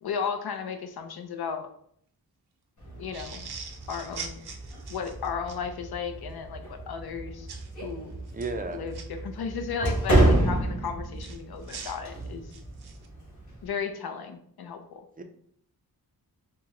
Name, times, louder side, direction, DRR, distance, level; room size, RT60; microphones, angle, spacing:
voice 1, 0.0-1.7 2.9-3.5 3.9-4.4 4.9-7.5 7.8-8.2 8.7-12.5 13.6-15.0, left 6 dB, 80° left, 6 dB, 0.5 m, -34 dB
sound 1, 2.8-13.7, right 1 dB, 50° left, 1.4 m, -30 dB
sound 2, 3.1-5.6 7.5-7.7 8.3-9.0 11.2-13.1, right 6 dB, 90° right, 0.6 m, -42 dB
voice 2, 8.3-8.8 15.2-15.3, right 3 dB, 25° right, 6 dB, 0.3 m, -33 dB
4.5 x 2.1 x 3.6 m, 0.66 s
wide cardioid pair, 175°, 38 cm